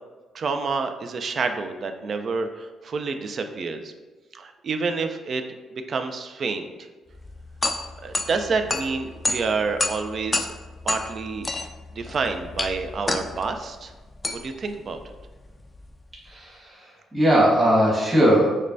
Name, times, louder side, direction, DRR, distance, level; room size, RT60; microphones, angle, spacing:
voice 1, 0.3-3.9 4.3-5.4 5.7-6.9 8.0-10.5 10.8-11.5 11.9-13.9 14.3-15.1, right 4 dB, 50° right, 7 dB, 0.4 m, -28 dB
sound 1, 7.1-16.3, left 2 dB, 20° left, 0.3 m, -31 dB
voice 2, 16.2-18.6, equal, 20° right, -6 dB, 1.4 m, -20 dB
6.5 x 2.2 x 2.6 m, 1.2 s
cardioid pair, 90°, 0 cm